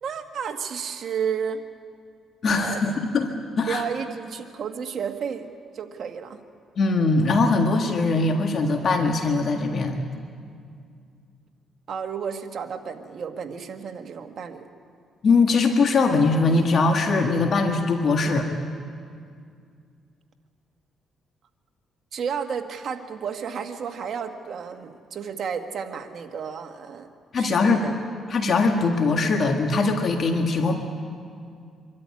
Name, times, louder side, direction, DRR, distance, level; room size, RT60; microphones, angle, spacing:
voice 1, 0.0-1.6 2.6-2.8 3.7-6.4 11.9-14.6 22.1-27.1 27.4-28.0, right 7 dB, 60° right, 5 dB, 1.6 m, -32 dB
voice 2, 2.4-3.3 3.6-3.8 6.8-10.0 15.2-18.5 27.3-27.9 28.3-30.8, left 3 dB, 50° left, 3 dB, 1.8 m, -21 dB
25.0 x 13.0 x 9.7 m, 2.2 s
cardioid pair, 90°, 0 cm